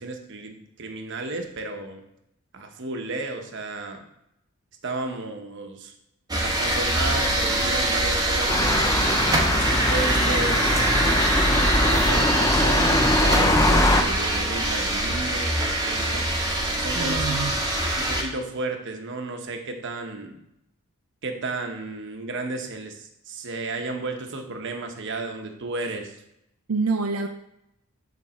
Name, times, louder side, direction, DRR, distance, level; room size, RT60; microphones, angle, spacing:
voice 1, 0.0-2.0 2.5-4.0 4.8-5.9 6.4-9.0 9.5-11.2 11.7-16.2 16.8-17.4 18.0-20.4 21.2-26.2, right 2 dB, 55° right, 5 dB, 1.0 m, -33 dB
sound 1, 6.3-18.2, right 1 dB, 20° right, 1.0 m, -24 dB
sound 2, 8.5-14.0, left 1 dB, 15° left, 0.5 m, -22 dB
voice 2, 17.0-17.5 26.7-27.3, right 4 dB, 85° right, 5 dB, 0.5 m, -26 dB
7.0 x 3.5 x 6.2 m, 0.80 s
head